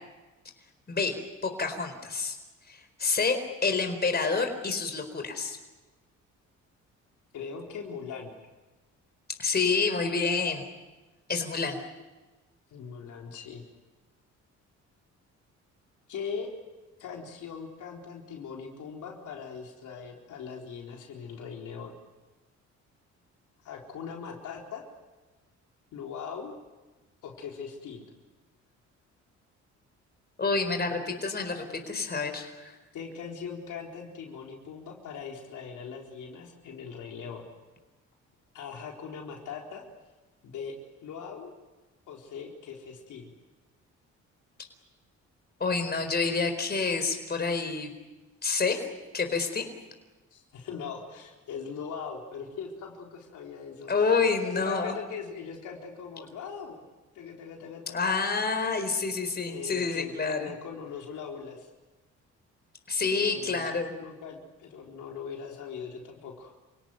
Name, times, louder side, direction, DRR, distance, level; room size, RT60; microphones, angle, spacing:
voice 1, 1.4-2.4 2.7-5.6 9.4-10.6 11.3-11.8 30.4-32.7 45.6-47.9 48.4-48.8 49.1-49.6 53.9-54.9 57.9-60.5 62.9-63.9, left 4 dB, 35° left, 6 dB, 4.5 m, -28 dB
voice 2, 7.3-8.3 12.7-13.6 16.1-16.5 17.0-21.9 23.6-24.8 25.9-26.5 27.2-28.0 31.4-31.5 32.9-37.5 38.5-39.8 40.4-40.7 41.0-41.5 42.1-43.2 50.3-54.1 54.4-56.8 57.1-58.0 59.5-61.7 63.1-66.5, left 6 dB, 80° left, 0 dB, 4.2 m, -40 dB
28.5 x 18.0 x 9.5 m, 1.2 s
cardioid pair, 90°, 30 cm